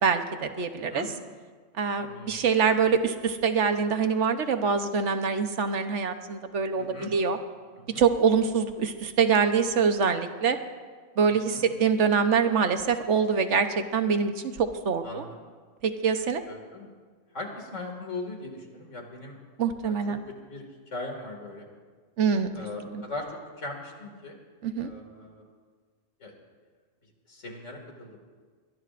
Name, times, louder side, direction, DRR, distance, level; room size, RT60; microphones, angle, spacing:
voice 1, 0.0-1.0 1.8-7.4 8.0-10.6 11.2-14.3 14.6-15.2 15.8-16.4 19.6-20.2 22.2-22.7 22.9-23.0 24.6-24.9, right 6 dB, 70° right, 8 dB, 1.2 m, -25 dB
voice 2, 2.0-2.4 6.8-7.1 7.8-8.0 11.3-11.7 15.0-15.4 16.5-16.9 17.3-19.4 19.8-21.7 22.5-24.4 24.8-25.5 26.2-26.3 27.0-28.2, left 2 dB, 75° left, 2 dB, 2.6 m, -40 dB
22.5 x 19.5 x 2.5 m, 1.6 s
omnidirectional pair, 1.3 m